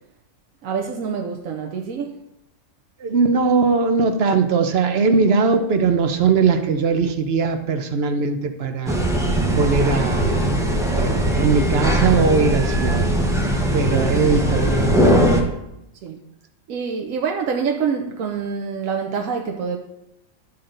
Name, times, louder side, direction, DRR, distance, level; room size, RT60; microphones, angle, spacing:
voice 1, 0.6-2.2 14.4-14.5 16.0-16.2 16.7-19.8, right 6 dB, 80° right, 1.1 m, -26 dB
voice 2, 3.0-9.1 9.5-10.5 10.9-13.1 13.7-14.9, right 5 dB, 55° right, 0.9 m, -20 dB
sound 1, 8.9-15.4, right 1 dB, 5° right, 0.9 m, -19 dB
12.0 x 4.3 x 3.8 m
omnidirectional pair, 1.4 m